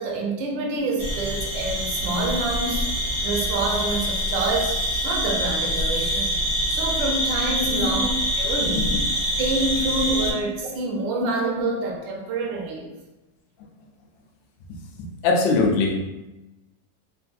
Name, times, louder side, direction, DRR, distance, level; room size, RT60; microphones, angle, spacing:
voice 1, 0.0-2.9 3.2-6.4 6.7-8.1 8.4-8.9 9.4-12.9, right 3 dB, 85° right, 0 dB, 1.3 m, -27 dB
sound 1, 1.0-10.3, equal, 50° left, 0.7 m, -25 dB
voice 2, 7.8-8.1 8.7-8.9 9.8-9.9 15.2-16.0, left 3 dB, 85° left, 1 dB, 1.3 m, -21 dB
3.5 x 2.6 x 2.3 m, 1.0 s
omnidirectional pair, 2.0 m